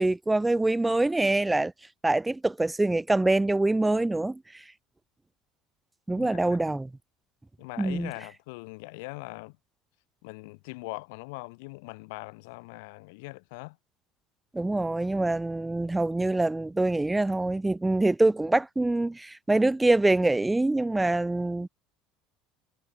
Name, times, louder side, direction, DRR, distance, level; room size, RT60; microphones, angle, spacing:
voice 1, 0.0-1.7 2.0-4.4 6.1-6.9 7.8-8.1 14.5-21.7, right 2 dB, 5° right, 1.2 m, -25 dB
voice 2, 6.1-6.8 7.6-9.6 10.2-13.8, left 28 dB, 90° left, 3.8 m, -41 dB
cardioid pair, 155°, 0 cm